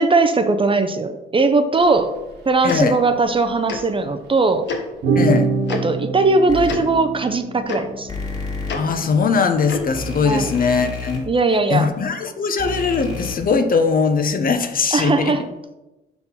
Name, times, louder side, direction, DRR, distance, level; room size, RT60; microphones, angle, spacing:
voice 1, 0.0-2.1 2.5-4.7 5.7-8.1 10.2-10.5 11.3-11.9 14.9-15.5, right 3 dB, 25° right, 8 dB, 0.6 m, -19 dB
sound 1, 1.9-2.0 2.3-2.5 3.3-3.7 5.0-9.3, right 4 dB, 60° right, 1.4 m, -25 dB
voice 2, 2.6-3.0 5.2-5.5 8.7-11.2 11.7-15.3, left 5 dB, 45° left, 8 dB, 0.8 m, -20 dB
Tick-tock, 2.7-2.8 3.7-3.8 4.7-4.8 5.7-5.8 6.6-6.8 7.7-7.8 8.7-8.8 9.7-9.9, left 5 dB, 65° left, 1.2 m, -27 dB
sound 2, 6.5-6.8 8.1-8.7 9.9-11.2 12.6-13.3, left 3 dB, 20° left, 2.1 m, -29 dB
5.6 x 4.4 x 5.7 m, 1.0 s
cardioid pair, 90°, 20 cm